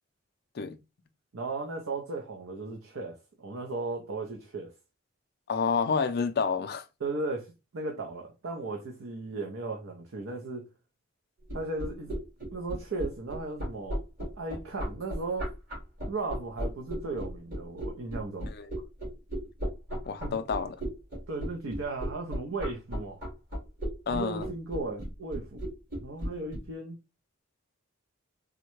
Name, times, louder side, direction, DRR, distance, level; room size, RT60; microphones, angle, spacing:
voice 1, 1.3-4.7 7.0-10.7 11.5-12.1 12.5-14.0 14.4-15.5 16.1-18.5 20.2-20.4 21.3-23.2 24.0-25.6 26.0-27.0, right 3 dB, 70° right, 0.6 m, -36 dB
voice 2, 5.5-6.8 18.5-18.7 20.1-20.8 24.1-24.5, left 5 dB, 50° left, 0.4 m, -29 dB
sound 1, 11.4-26.6, equal, 45° right, 1.9 m, -34 dB
3.6 x 2.1 x 3.0 m
head